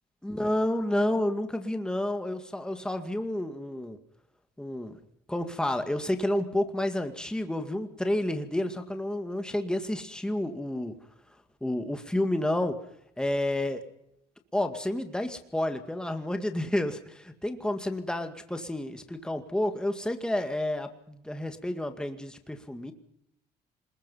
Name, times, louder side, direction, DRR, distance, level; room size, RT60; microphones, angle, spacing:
voice 1, 0.2-4.0 4.6-5.0 5.3-10.9 11.6-12.9 13.2-13.8 14.5-22.9, left 1 dB, 5° left, 7 dB, 2.1 m, -30 dB
27.0 x 21.5 x 5.7 m, 0.77 s
cardioid pair, 110°, 17 cm